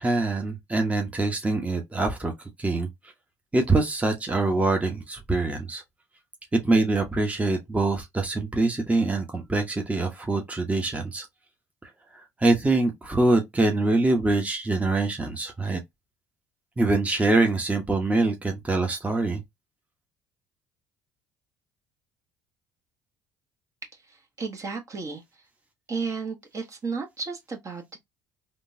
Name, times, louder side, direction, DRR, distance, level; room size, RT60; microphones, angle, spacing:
voice 1, 0.0-2.3 2.6-2.9 3.5-5.8 6.5-11.3 12.1-15.8 16.8-19.4, right 2 dB, 15° right, 1.0 m, -24 dB
voice 2, 24.1-25.2 25.9-27.8, right 4 dB, 40° right, 1.2 m, -33 dB
3.6 x 2.4 x 2.7 m
hypercardioid pair, 60°, 9 cm